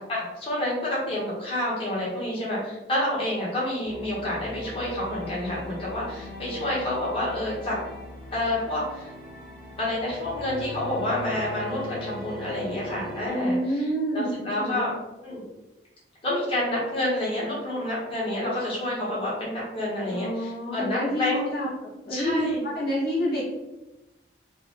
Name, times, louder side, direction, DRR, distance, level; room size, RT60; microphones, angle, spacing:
voice 1, 0.0-7.8 8.3-9.1 9.8-14.9 15.2-15.4 16.2-21.4 22.1-22.6, left 1 dB, 30° left, -6 dB, 1.3 m, -29 dB
sound 1, 3.8-13.3, left 1 dB, 5° left, 0.8 m, -39 dB
voice 2, 13.3-14.9 20.1-23.5, equal, 55° left, -8 dB, 0.8 m, -28 dB
4.1 x 2.3 x 3.1 m, 1.0 s
head